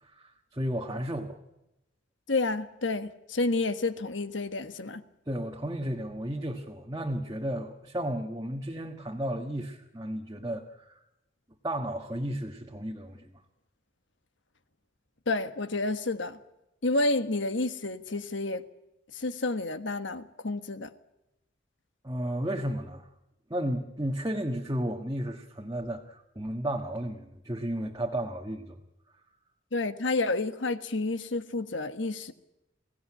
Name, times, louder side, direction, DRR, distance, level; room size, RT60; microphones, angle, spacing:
voice 1, 0.0-1.4 5.3-11.0 11.6-13.3 22.0-23.1 23.5-28.8, right 1 dB, 20° right, 1 dB, 1.5 m, -33 dB
voice 2, 2.3-5.0 15.3-16.4 16.8-18.6 19.1-20.9 29.7-32.3, left 2 dB, 75° left, 11 dB, 1.4 m, -30 dB
22.5 x 16.5 x 9.9 m, 0.90 s
head